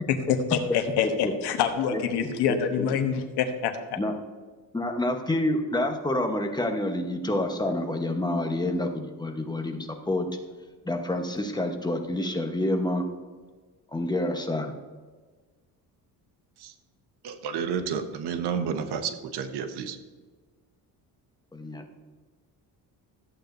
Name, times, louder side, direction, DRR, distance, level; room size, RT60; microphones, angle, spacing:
voice 1, 0.1-3.7, left 8 dB, 80° left, 6 dB, 1.2 m, -26 dB
voice 2, 1.9-2.9 4.0-4.1 4.7-10.3 10.8-13.0 13.9-14.7 21.5-21.8, left 1 dB, 10° left, 4 dB, 1.0 m, -28 dB
voice 3, 17.2-20.0, right 7 dB, 80° right, 7 dB, 1.1 m, -31 dB
14.0 x 8.5 x 2.6 m, 1.4 s
cardioid pair, 115°, 39 cm